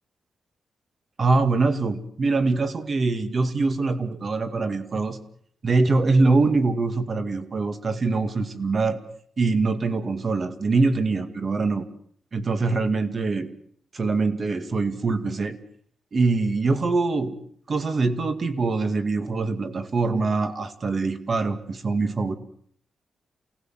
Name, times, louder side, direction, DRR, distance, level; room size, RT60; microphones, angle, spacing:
voice 1, 1.2-5.2 5.6-9.0 9.4-11.9 12.3-13.5 13.9-15.6 16.1-17.4 17.7-22.4, right 3 dB, 40° right, 9 dB, 2.2 m, -23 dB
28.5 x 18.5 x 7.6 m, 0.64 s
wide cardioid pair, 140°, 0 cm